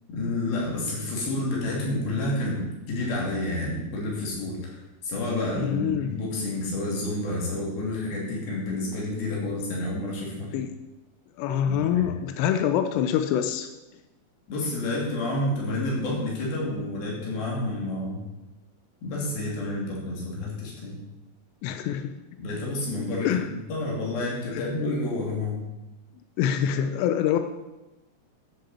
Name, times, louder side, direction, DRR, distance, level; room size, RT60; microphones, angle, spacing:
voice 1, 0.1-10.5 11.7-12.1 14.5-18.2 19.0-21.0 22.4-23.4 23.7-25.7, left 2 dB, 60° left, -4 dB, 4.5 m, -29 dB
voice 2, 5.6-6.1 10.5-10.7 11.4-13.7 21.6-22.2 23.2-23.5 24.5-24.7 26.4-27.4, left 9 dB, 85° left, 8 dB, 2.8 m, -25 dB
15.0 x 7.8 x 4.3 m, 1.0 s
omnidirectional pair, 5.0 m